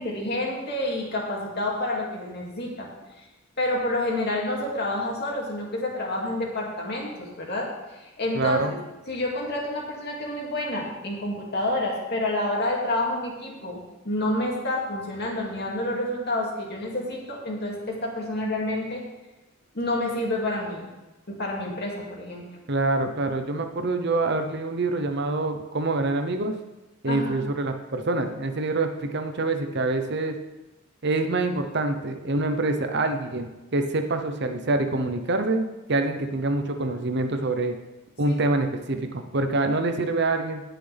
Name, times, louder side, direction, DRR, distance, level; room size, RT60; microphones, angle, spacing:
voice 1, 0.0-2.9 3.6-7.7 7.9-8.7 9.1-19.0 19.7-20.9 21.3-22.5 27.0-27.5 38.3-38.4, left 1 dB, 55° left, -2 dB, 2.4 m, -29 dB
voice 2, 8.3-8.7 22.7-26.5 27.0-30.4 31.0-37.7 38.2-40.6, right 2 dB, 60° right, 7 dB, 0.9 m, -26 dB
18.0 x 6.0 x 3.5 m, 1.1 s
head